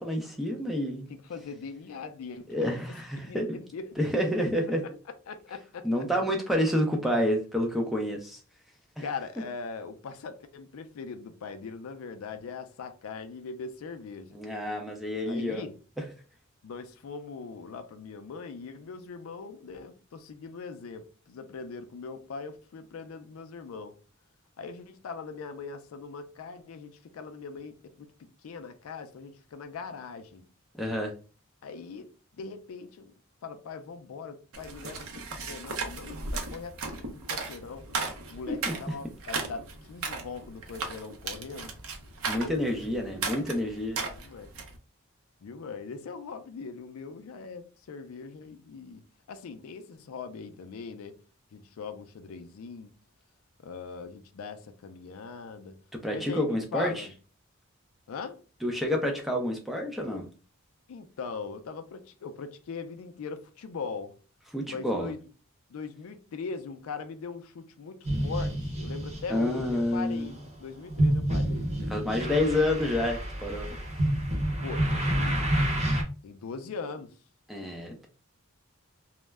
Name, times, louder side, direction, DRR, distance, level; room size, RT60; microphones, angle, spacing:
voice 1, 0.0-1.1 2.5-3.6 4.0-4.8 5.8-8.4 9.0-9.1 14.3-15.6 30.7-31.1 38.5-39.0 42.3-44.0 56.0-57.1 58.6-60.3 64.5-65.1 69.3-70.3 71.9-73.8 77.5-78.1, left 1 dB, ahead, 0.4 m, -29 dB
voice 2, 1.1-2.5 3.2-4.5 5.3-5.9 9.0-14.4 15.2-15.7 16.6-24.0 24.6-30.5 31.6-33.1 33.4-38.0 38.3-41.7 42.4-42.5 44.1-44.5 45.4-51.2 51.5-52.9 53.6-55.8 56.1-57.1 58.1-58.4 60.9-64.2 64.7-65.2 65.7-71.7 74.6-75.6 76.2-77.2, left 5 dB, 80° left, 0.4 m, -41 dB
sound 1, 34.5-44.8, right 4 dB, 75° right, 0.6 m, -36 dB
sound 2, 68.0-76.0, right 1 dB, 30° right, 0.7 m, -29 dB
2.2 x 2.0 x 3.2 m
head